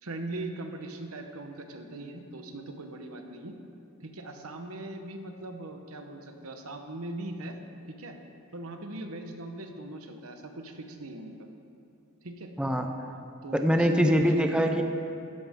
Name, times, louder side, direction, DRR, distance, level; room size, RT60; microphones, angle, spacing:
voice 1, 0.0-3.5 4.0-7.6 7.9-8.2 8.5-11.5 12.2-12.5 13.4-14.7, right 2 dB, 75° right, 5 dB, 1.1 m, -40 dB
voice 2, 12.6-12.9 13.5-14.8, equal, 5° right, 4 dB, 0.6 m, -23 dB
15.0 x 13.0 x 3.7 m, 2.5 s
head